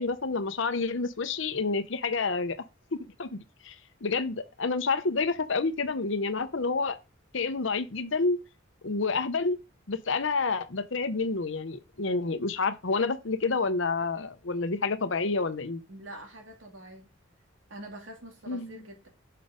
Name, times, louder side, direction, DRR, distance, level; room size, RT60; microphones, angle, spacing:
voice 1, 0.0-2.6 2.9-3.4 3.6-3.7 4.0-7.0 7.3-8.4 8.8-9.6 9.9-15.8 18.5-18.7, left 4 dB, 65° left, 0.8 m, -29 dB
voice 2, 15.9-17.1 17.7-19.1, right 1 dB, 75° right, 2.4 m, -45 dB
6.6 x 4.0 x 5.1 m
head